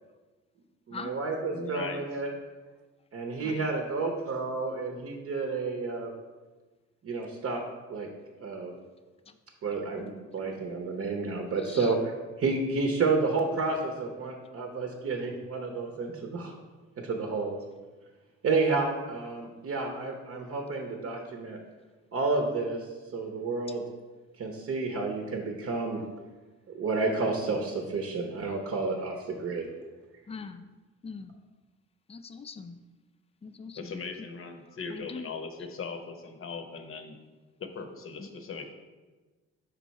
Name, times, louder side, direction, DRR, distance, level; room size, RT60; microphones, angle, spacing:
voice 1, 0.9-2.3 3.1-6.1 7.0-7.6 7.9-8.1 8.4-8.7 9.6-12.1 12.4-16.6 17.0-17.6 18.4-21.6 22.1-22.9 23.1-23.8 24.4-26.0 26.7-29.7, right 3 dB, 50° right, 3 dB, 0.8 m, -30 dB
voice 2, 1.5-2.0 33.8-37.1 37.6-38.7, left 4 dB, 45° left, 6 dB, 0.8 m, -39 dB
voice 3, 11.6-11.9 30.3-30.7 31.0-31.4 32.1-32.8 33.4-34.0 34.7-35.3 38.2-38.3, left 4 dB, 20° left, 9 dB, 0.4 m, -42 dB
5.4 x 4.5 x 4.1 m, 1.3 s
cardioid pair, 90°, 30 cm